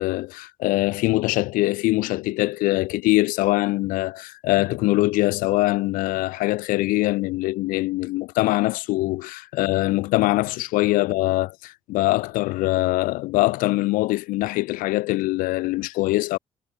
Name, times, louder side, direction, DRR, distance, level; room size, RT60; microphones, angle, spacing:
voice 1, 0.0-16.4, left 20 dB, 85° left, 6.7 m, -23 dB
supercardioid pair, 60°, 14 cm